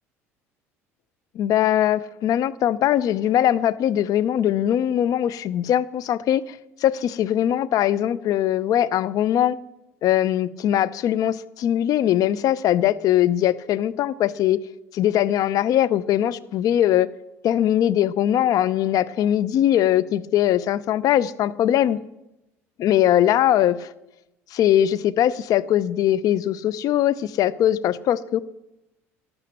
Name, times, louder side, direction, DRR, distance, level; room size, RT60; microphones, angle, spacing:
voice 1, 1.3-9.6 10.0-14.6 14.9-17.1 17.4-22.0 22.8-23.9 24.5-28.4, left 11 dB, 55° left, 16 dB, 0.7 m, -21 dB
12.5 x 11.0 x 7.5 m, 0.94 s
hypercardioid pair, 65°, 7 cm